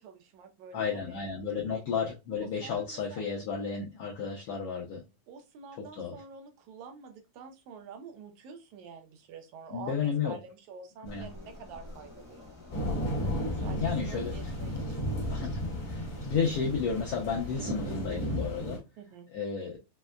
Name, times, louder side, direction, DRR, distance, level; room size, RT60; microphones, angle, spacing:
voice 1, 0.0-1.2 1.7-1.8 2.3-3.2 5.3-12.6 13.5-15.1 19.0-19.3, right 5 dB, 80° right, 5 dB, 2.0 m, -48 dB
voice 2, 0.7-5.0 5.9-6.2 9.7-10.4 11.0-11.3 13.8-14.3 14.7-14.8 15.3-18.8 19.3-19.8, left 6 dB, 90° left, -1 dB, 1.3 m, -32 dB
sound 1, 11.0-18.2, left 2 dB, 30° left, 0.7 m, -49 dB
sound 2, 12.7-18.8, equal, 50° left, 1.3 m, -34 dB
5.2 x 2.1 x 2.3 m, 0.25 s
omnidirectional pair, 3.4 m